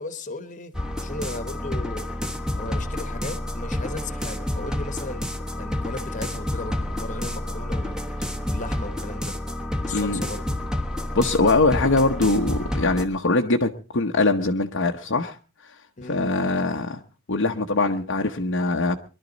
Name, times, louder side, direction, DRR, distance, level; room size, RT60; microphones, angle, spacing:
voice 1, 0.0-2.1 2.5-9.4 9.8-10.6 16.0-16.3, left 2 dB, 35° left, 10 dB, 1.3 m, -36 dB
sound 1, 0.7-13.1, left 1 dB, 5° right, 1.2 m, -29 dB
voice 2, 9.9-10.2 11.1-15.4 16.1-17.0 17.3-19.0, left 2 dB, 55° left, 2 dB, 0.9 m, -22 dB
22.5 x 12.0 x 4.0 m, 0.34 s
head